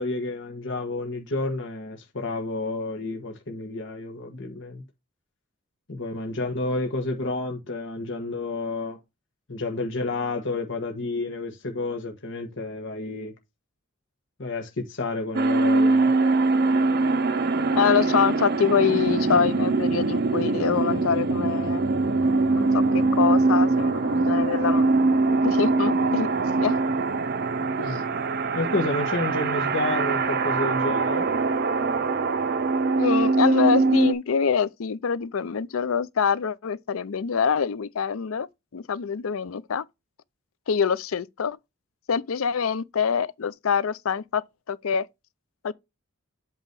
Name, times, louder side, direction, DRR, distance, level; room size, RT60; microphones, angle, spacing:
voice 1, 0.0-4.8 5.9-9.0 9.5-13.3 14.4-16.1 27.8-28.0 28.5-31.3, left 2 dB, 60° left, 1.4 m, -30 dB
sound 1, 15.3-34.1, right 3 dB, 50° right, 0.6 m, -23 dB
voice 2, 17.7-21.8 22.5-22.7 22.9-24.9 25.3-26.3 26.6-26.8 27.8-28.0 33.0-38.5 38.7-39.8 40.7-41.6 42.1-45.1 45.6-45.7, left 6 dB, 75° left, 0.5 m, -25 dB
8.1 x 3.0 x 5.3 m
head